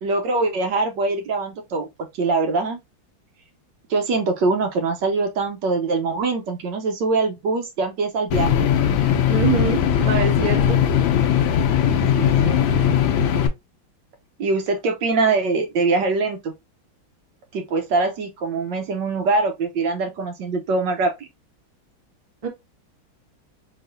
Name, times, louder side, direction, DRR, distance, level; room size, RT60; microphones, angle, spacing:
voice 1, 0.0-1.9 2.1-2.8 3.9-8.6 12.1-12.6 14.4-16.5 17.5-21.3, right 3 dB, 70° right, 1.3 m, -23 dB
sound 1, 8.3-13.5, left 8 dB, 80° left, 1.5 m, -19 dB
voice 2, 9.3-10.8 22.4-22.5, right 5 dB, 25° right, 0.8 m, -24 dB
4.0 x 3.7 x 2.5 m
omnidirectional pair, 2.2 m